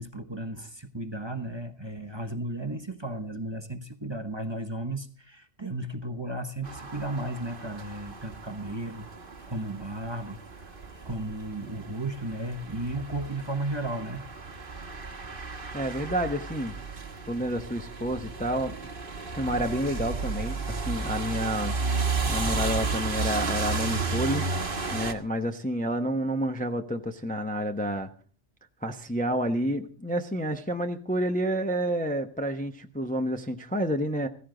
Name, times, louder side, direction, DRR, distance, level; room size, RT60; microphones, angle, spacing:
voice 1, 0.0-9.1 9.5-10.4 10.7-14.2, right 1 dB, 25° right, 7 dB, 1.0 m, -34 dB
sound 1, 6.6-25.1, right 4 dB, 45° right, 1.6 m, -33 dB
voice 2, 15.7-16.7 17.3-18.8 19.4-21.7 22.3-24.5 24.9-28.1 28.8-34.3, equal, 10° left, 5 dB, 0.8 m, -29 dB
15.5 x 15.5 x 3.9 m, 0.43 s
omnidirectional pair, 1.2 m